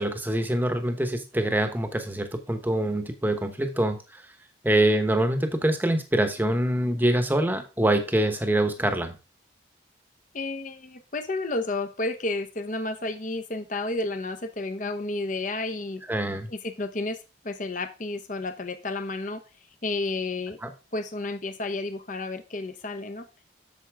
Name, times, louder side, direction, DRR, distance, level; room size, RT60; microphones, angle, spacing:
voice 1, 0.0-4.2 4.6-9.2 16.1-16.5 20.6-20.7, right 1 dB, 10° right, 7 dB, 1.0 m, -25 dB
voice 2, 10.3-16.0 16.5-17.2 17.4-19.4 19.8-20.6 20.9-23.3, left 2 dB, 45° left, 8 dB, 1.0 m, -31 dB
8.1 x 7.0 x 3.6 m, 0.30 s
head